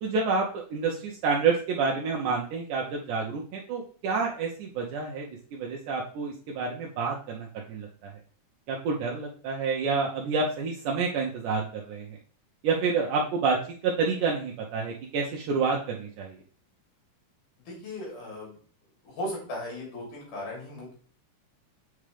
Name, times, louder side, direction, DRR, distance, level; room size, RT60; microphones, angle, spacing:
voice 1, 0.0-8.1 8.7-12.2 12.6-13.6 13.8-16.4, right 4 dB, 80° right, -2 dB, 2.3 m, -28 dB
voice 2, 17.7-18.6 19.0-20.9, left 1 dB, 80° left, -3 dB, 4.6 m, -37 dB
7.5 x 5.0 x 3.3 m, 0.42 s
omnidirectional pair, 3.6 m